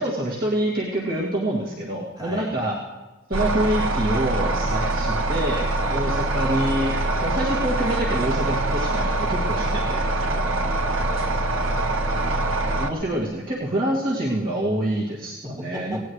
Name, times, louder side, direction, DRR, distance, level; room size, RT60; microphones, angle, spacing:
voice 1, 0.0-2.8 3.3-6.9 7.2-10.1 12.8-16.0, right 1 dB, 45° right, -5 dB, 2.1 m, -26 dB
voice 2, 2.2-2.5 5.8-6.1 10.3-12.6 15.4-16.1, equal, 20° right, -5 dB, 3.5 m, -37 dB
sound 1, 3.3-12.9, right 2 dB, 85° right, 1.4 m, -24 dB
18.0 x 17.5 x 3.2 m, 1.1 s
head